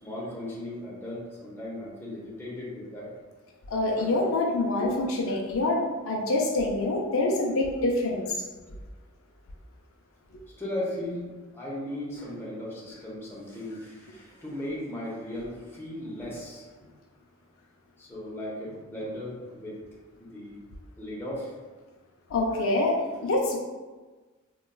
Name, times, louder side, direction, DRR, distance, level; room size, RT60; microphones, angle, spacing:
voice 1, 0.0-3.1 4.0-4.1 10.6-16.9 18.0-19.8 20.2-20.6 21.0-21.6, left 1 dB, 10° left, -5 dB, 0.6 m, -37 dB
voice 2, 3.7-8.4 22.3-23.6, left 2 dB, 70° left, 0 dB, 0.4 m, -26 dB
3.8 x 2.2 x 2.2 m, 1.3 s
head